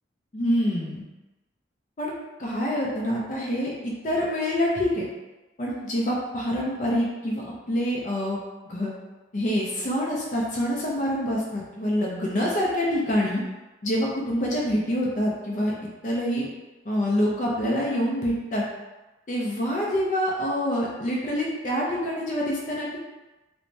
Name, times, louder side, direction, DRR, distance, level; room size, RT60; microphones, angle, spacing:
voice 1, 0.3-1.0 2.0-2.1 2.4-5.0 5.6-8.4 8.7-8.9 9.3-13.4 13.8-15.7 16.0-16.5 16.9-18.6 19.3-23.0, equal, 45° left, -3 dB, 0.5 m, -26 dB
3.2 x 2.1 x 2.6 m, 1.1 s
head